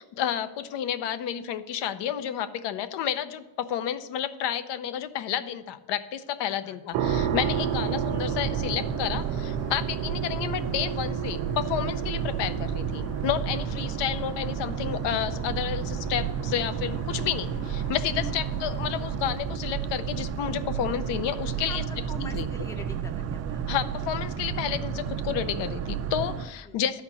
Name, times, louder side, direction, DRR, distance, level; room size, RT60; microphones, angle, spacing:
voice 1, 0.0-21.8 22.3-22.5 23.7-27.0, left 10 dB, 65° left, 12 dB, 0.7 m, -31 dB
voice 2, 6.5-6.8 7.5-7.9 18.1-18.4 21.7-23.6 26.6-26.8, left 1 dB, 5° left, 6 dB, 0.6 m, -43 dB
sound 1, 6.9-21.8, right 7 dB, 80° right, 0.9 m, -35 dB
Boat Water vehicle, 7.0-26.5, right 8 dB, 35° right, 0.4 m, -32 dB
sound 2, 7.2-19.2, left 3 dB, 85° left, 1.2 m, -45 dB
11.5 x 4.4 x 7.1 m, 1.1 s
cardioid pair, 155°, 45 cm